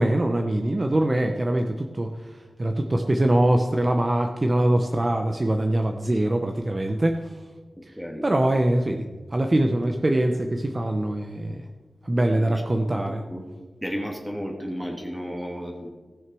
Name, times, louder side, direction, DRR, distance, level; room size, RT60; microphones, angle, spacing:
voice 1, 0.0-7.2 8.2-9.1 9.3-11.6 12.0-13.2, right 1 dB, 30° right, 4 dB, 0.8 m, -23 dB
voice 2, 7.8-8.2 12.3-13.5 13.8-15.9, equal, 5° right, 1 dB, 2.0 m, -34 dB
15.5 x 6.5 x 6.2 m, 1.3 s
wide cardioid pair, 90°, 0 cm